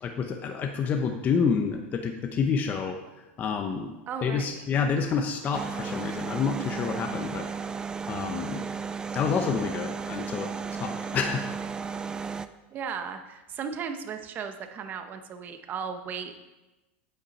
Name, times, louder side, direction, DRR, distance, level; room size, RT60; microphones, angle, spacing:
voice 1, 0.0-3.0 3.4-3.9 4.2-7.4 8.1-8.6 9.1-10.5 10.8-11.4, left 6 dB, 25° left, 4 dB, 0.7 m, -28 dB
voice 2, 4.1-4.7 12.7-16.4, right 6 dB, 30° right, 7 dB, 0.9 m, -36 dB
sound 1, 5.5-12.5, right 5 dB, 10° right, 0.3 m, -34 dB
8.8 x 8.1 x 4.2 m, 1.1 s
supercardioid pair, 145°, 6 cm